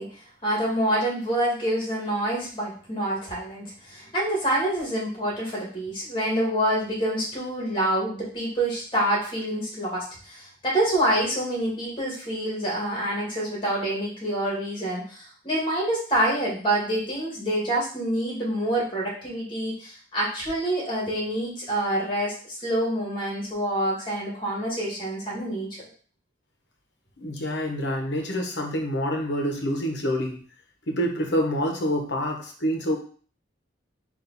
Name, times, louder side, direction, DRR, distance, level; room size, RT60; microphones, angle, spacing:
voice 1, 0.0-25.8, right 1 dB, 25° left, -4 dB, 1.6 m, -27 dB
voice 2, 27.2-30.4 30.9-33.0, equal, 65° left, 2 dB, 1.0 m, -27 dB
4.2 x 2.6 x 4.0 m, 0.42 s
head